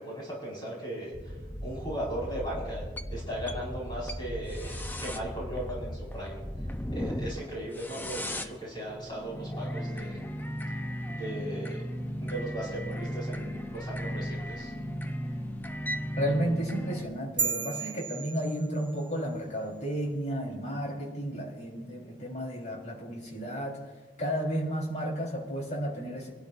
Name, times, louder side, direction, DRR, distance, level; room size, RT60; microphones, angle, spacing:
voice 1, 0.0-6.4 6.9-10.2 11.1-11.8 12.2-14.7, right 1 dB, 25° left, -5 dB, 4.7 m, -37 dB
sound 1, 1.1-17.1, equal, 10° left, 0.6 m, -36 dB
voice 2, 16.2-23.8 24.2-26.3, equal, 45° left, -2 dB, 3.8 m, -32 dB
sound 2, 17.4-19.1, right 5 dB, 30° right, 0.9 m, -33 dB
26.0 x 12.5 x 2.5 m, 1.3 s
head